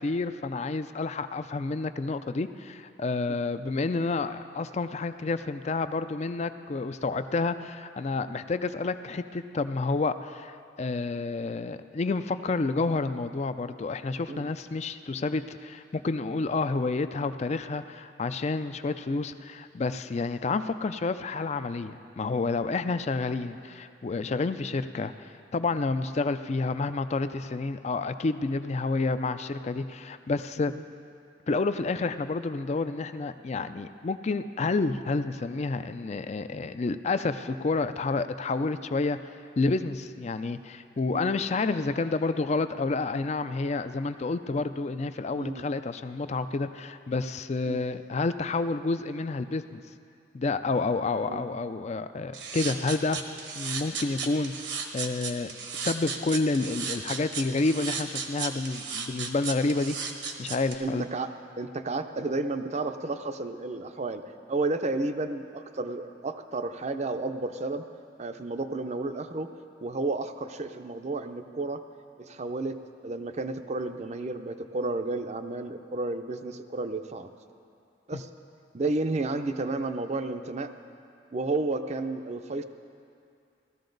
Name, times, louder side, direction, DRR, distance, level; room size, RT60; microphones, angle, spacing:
voice 1, 0.0-30.7 31.5-39.2 39.6-49.8 50.3-53.2 53.6-54.5 54.9-55.5 55.8-60.0 60.4-61.1 78.1-78.2, left 3 dB, 35° left, 11 dB, 0.4 m, -29 dB
voice 2, 45.4-45.7 47.7-47.8 51.3-51.4 60.8-61.3 61.6-64.2 64.5-67.8 68.2-69.5 69.8-71.8 72.2-77.3 78.1-78.3 78.7-80.7 81.3-82.6, right 2 dB, 40° right, 9 dB, 0.5 m, -32 dB
sound 1, 52.3-60.8, right 6 dB, 75° right, 1.2 m, -34 dB
16.5 x 13.5 x 3.9 m, 2.5 s
head